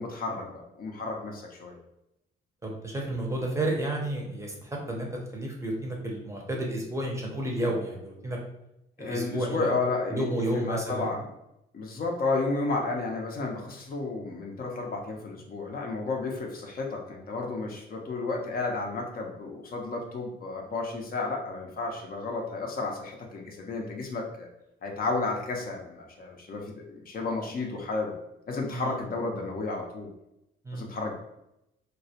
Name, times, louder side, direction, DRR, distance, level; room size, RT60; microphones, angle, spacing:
voice 1, 0.0-1.8 9.0-11.3 11.7-24.5 24.8-28.1 28.5-30.1 30.7-31.1, left 3 dB, 50° left, 0 dB, 0.5 m, -32 dB
voice 2, 2.6-8.4 9.0-9.7 10.1-11.1 28.7-29.0 30.6-30.8, right 1 dB, 15° right, -1 dB, 0.6 m, -31 dB
2.2 x 2.0 x 2.7 m, 0.86 s
cardioid pair, 90°, 20 cm